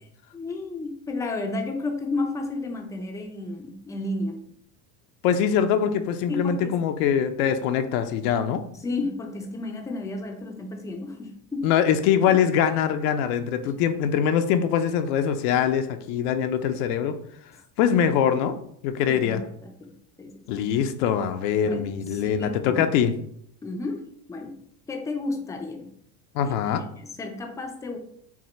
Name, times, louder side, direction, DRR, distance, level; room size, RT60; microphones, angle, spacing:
voice 1, 0.3-4.4 6.3-6.8 8.7-11.7 19.1-19.9 20.2-20.5 21.6-22.9 23.6-24.6 24.9-25.9 26.4-26.5 27.0-28.0, left 2 dB, 10° left, 4 dB, 0.4 m, -32 dB
voice 2, 5.2-8.6 11.6-17.2 17.8-18.5 18.8-19.4 20.5-23.1 26.3-26.8, left 8 dB, 80° left, 8 dB, 0.6 m, -23 dB
5.9 x 2.1 x 4.2 m, 0.67 s
supercardioid pair, 125°, 46 cm